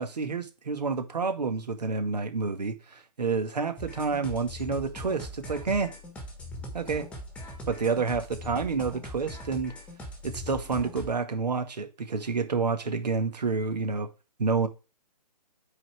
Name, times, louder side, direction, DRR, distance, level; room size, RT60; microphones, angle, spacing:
voice 1, 0.0-5.9 6.7-7.1 7.7-9.7 10.2-14.1 14.4-14.7, right 4 dB, 75° right, 1.9 m, -29 dB
sound 1, 3.8-11.1, equal, 5° left, 1.3 m, -41 dB
8.8 x 4.2 x 4.8 m
hypercardioid pair, 150°, 21 cm